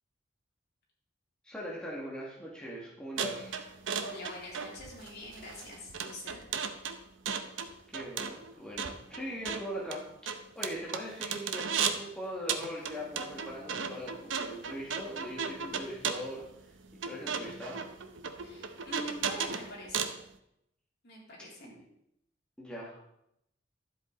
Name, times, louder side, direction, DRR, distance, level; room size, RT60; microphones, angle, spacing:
voice 1, 1.4-3.6 7.9-10.0 10.6-16.5 17.0-17.8 21.6-21.7 22.6-23.0, equal, 5° left, -5 dB, 2.0 m, -41 dB
sound 1, 3.2-12.1 12.5-20.2, right 6 dB, 85° right, 0.8 m, -36 dB
voice 2, 4.0-6.4 18.4-20.1 21.0-21.7, equal, 60° left, -4 dB, 3.7 m, -44 dB
12.0 x 8.0 x 4.0 m, 0.77 s
head